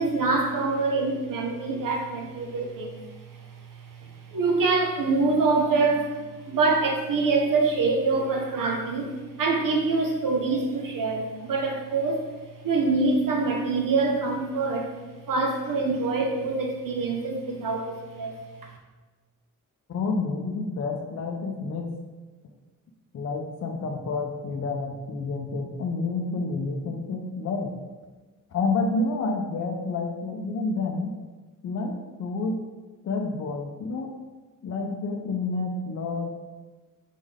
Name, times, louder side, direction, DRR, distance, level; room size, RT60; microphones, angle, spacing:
voice 1, 0.0-6.2 6.5-12.3 12.6-14.9 15.3-18.4, right 3 dB, 75° right, 2 dB, 0.8 m, -25 dB
voice 2, 19.9-21.9 23.1-27.7 28.5-31.1 31.6-31.9 32.2-32.6 33.0-34.1 34.6-36.3, left 3 dB, 50° left, 2 dB, 0.4 m, -29 dB
4.1 x 3.6 x 3.5 m, 1.3 s
wide cardioid pair, 175°, 33 cm